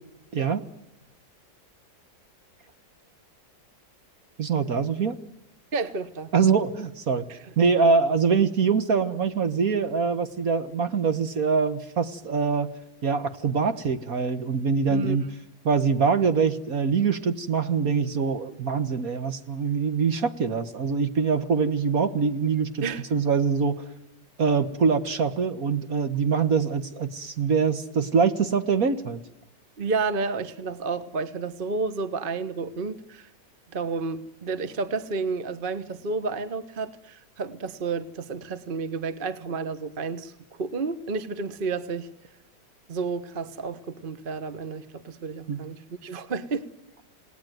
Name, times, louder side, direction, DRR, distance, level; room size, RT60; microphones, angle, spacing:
voice 1, 0.3-0.6 4.4-5.2 6.3-7.2 7.6-12.7 13.0-15.3 15.6-22.8 23.1-23.8 24.4-29.2 45.5-45.6, right 5 dB, 55° right, 10 dB, 1.8 m, -24 dB
voice 2, 5.7-6.3 7.3-7.5 14.9-15.2 22.8-23.0 29.8-33.3 33.7-40.3 40.6-42.1 42.9-46.7, right 4 dB, 35° right, 12 dB, 1.3 m, -31 dB
28.5 x 18.5 x 9.5 m, 0.88 s
omnidirectional pair, 1.9 m